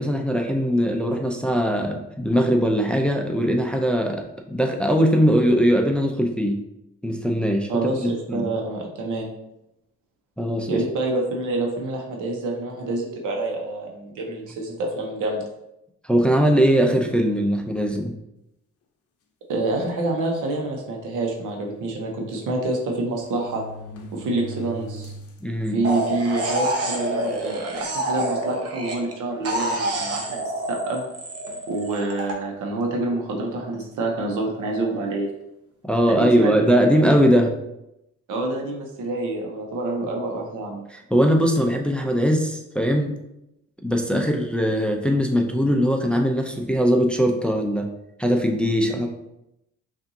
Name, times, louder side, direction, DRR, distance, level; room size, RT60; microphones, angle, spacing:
voice 1, 0.0-6.6 7.0-7.7 8.0-8.5 10.4-10.8 16.0-18.1 25.4-25.8 35.8-37.5 40.9-43.1 43.8-47.9 48.2-49.1, equal, 5° left, 2 dB, 0.4 m, -20 dB
voice 2, 7.7-9.3 10.7-15.4 19.5-23.6 24.1-25.1 25.7-31.0 31.7-35.3 36.1-36.5 38.3-40.8 44.1-44.2, right 2 dB, 85° right, 1 dB, 1.0 m, -27 dB
sound 1, 19.5-19.8 20.6-20.7 21.0-21.1 22.4-22.5 23.2-25.4 25.9-26.0 26.8-26.9 27.3-27.6 28.2-28.4 29.7-30.5 31.5-31.7, right 1 dB, 50° left, 0.7 m, -40 dB
sound 2, 25.8-29.1 29.4-32.3, right 1 dB, 50° right, 0.9 m, -27 dB
5.5 x 2.6 x 2.7 m, 0.86 s
cardioid pair, 90°, 30 cm